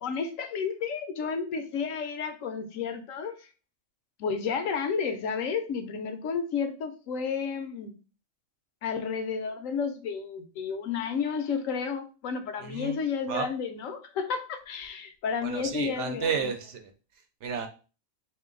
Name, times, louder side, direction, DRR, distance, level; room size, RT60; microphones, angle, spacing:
voice 1, 0.0-3.5 4.2-7.9 8.8-16.5, left 6 dB, 75° left, 8 dB, 1.0 m, -32 dB
voice 2, 12.6-13.0 13.3-13.5 15.4-16.9 17.4-17.7, right 6 dB, 65° right, 6 dB, 0.8 m, -32 dB
3.7 x 2.7 x 3.7 m, 0.35 s
omnidirectional pair, 1.4 m